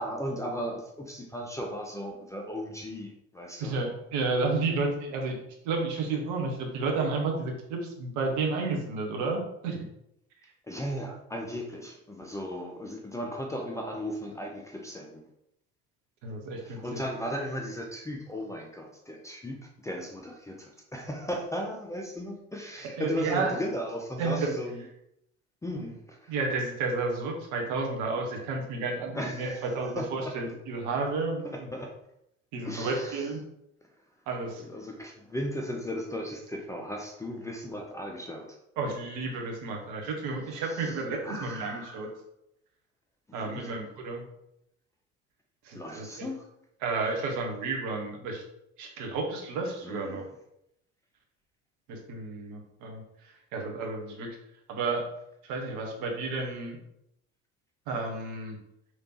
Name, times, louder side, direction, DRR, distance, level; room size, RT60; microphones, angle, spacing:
voice 1, 0.0-3.7 10.7-15.2 16.6-19.6 19.8-24.8 25.6-26.3 29.1-29.6 30.0-30.3 31.4-31.9 32.6-33.3 34.6-38.5 40.5-41.0 41.2-42.1 43.4-43.8 45.7-46.5 49.8-50.2, equal, 10° left, 1 dB, 0.6 m, -36 dB
voice 2, 3.6-5.4 5.6-9.9 16.2-17.0 22.9-23.5 24.2-24.5 26.3-31.7 32.5-33.4 34.3-34.6 38.8-42.1 43.3-44.2 45.6-46.3 46.8-48.4 48.8-50.2 51.9-54.4 54.7-55.1 55.4-56.8 57.9-58.6, right 3 dB, 50° right, 1 dB, 1.1 m, -31 dB
5.1 x 3.1 x 2.9 m, 0.80 s
figure-of-eight pair, 60°, 38 cm